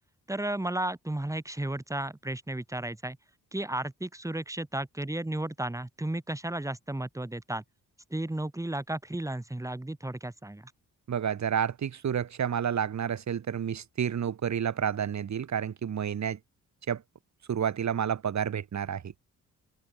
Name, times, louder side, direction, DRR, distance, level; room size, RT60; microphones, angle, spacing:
voice 1, 0.3-3.2 3.5-7.6 8.1-10.7, right 1 dB, 10° right, 4.8 m, -33 dB
voice 2, 11.1-16.4 16.9-17.0 17.5-19.1, right 8 dB, 55° right, 2.1 m, -30 dB
wide cardioid pair, 155°, 34 cm